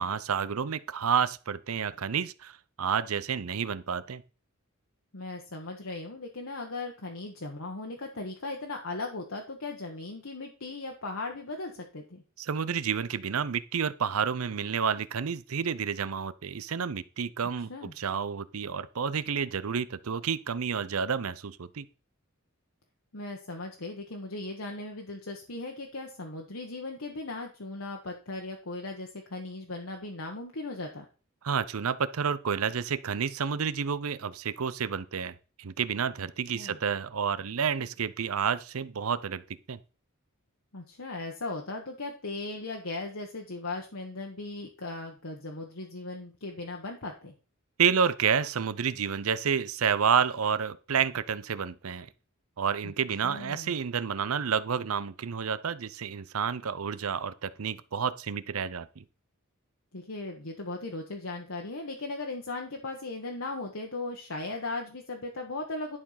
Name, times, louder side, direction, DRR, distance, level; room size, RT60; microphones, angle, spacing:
voice 1, 0.0-4.2 12.4-21.9 31.4-39.4 39.7-39.8 47.8-52.1 52.6-59.0, right 7 dB, 85° right, 0.6 m, -30 dB
voice 2, 5.1-12.2 17.7-17.9 23.1-31.0 36.5-36.8 40.7-47.3 52.8-52.9 53.2-53.7 59.9-66.0, left 2 dB, 70° left, 1.4 m, -38 dB
11.0 x 4.6 x 5.7 m
head